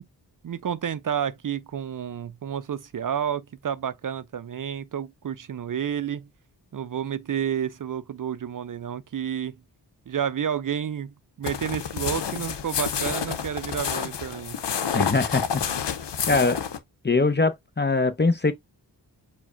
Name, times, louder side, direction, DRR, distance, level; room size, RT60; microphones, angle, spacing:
voice 1, 0.4-6.3 6.7-9.6 10.1-14.6, right 8 dB, 50° right, 0.5 m, -30 dB
sound 1, 11.4-16.8, left 7 dB, 85° left, 0.8 m, -29 dB
voice 2, 14.9-15.6 16.3-16.6 17.0-18.5, left 3 dB, 25° left, 0.8 m, -22 dB
4.8 x 2.3 x 4.9 m
cardioid pair, 55°, 41 cm